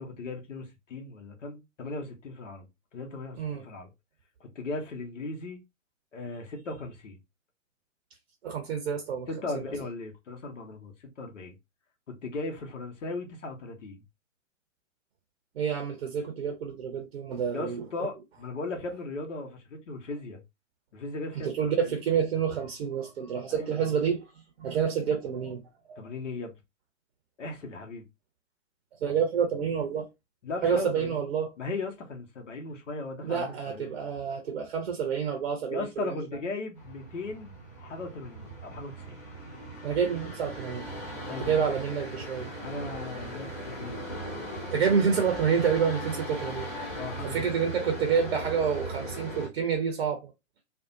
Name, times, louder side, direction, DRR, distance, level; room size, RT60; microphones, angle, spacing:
voice 1, 0.0-2.7 2.9-3.9 4.4-5.6 6.1-7.2 9.3-11.5 12.2-14.0 17.5-20.4 20.9-21.7 23.5-23.8 26.0-26.5 27.4-28.1 30.4-31.2 31.6-33.9 35.7-39.2 41.3-41.6 42.6-44.0 44.7-44.8 47.0-47.7, left 3 dB, 70° left, 1.0 m, -37 dB
voice 2, 8.4-9.3 15.6-17.8 21.4-24.3 24.6-25.6 25.9-26.0 29.0-30.1 30.6-31.5 33.2-36.2 39.8-40.8 41.3-42.5 44.7-46.7 47.2-50.3, right 7 dB, 55° right, 0.7 m, -28 dB
sound 1, 36.8-49.5, right 1 dB, 10° left, 0.3 m, -38 dB
2.6 x 2.1 x 2.6 m
figure-of-eight pair, 115°, 39 cm